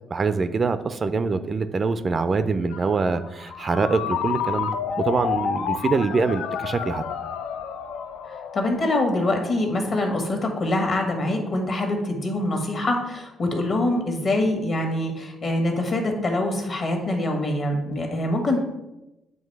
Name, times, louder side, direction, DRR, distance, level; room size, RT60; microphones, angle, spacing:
voice 1, 0.1-7.0, right 4 dB, 40° right, 11 dB, 0.3 m, -24 dB
Ringtone, 2.7-10.2, left 7 dB, 85° left, 0.4 m, -30 dB
voice 2, 8.3-18.6, left 1 dB, 50° left, 2 dB, 1.4 m, -24 dB
7.7 x 2.7 x 4.5 m, 0.97 s
cardioid pair, 90°, 0 cm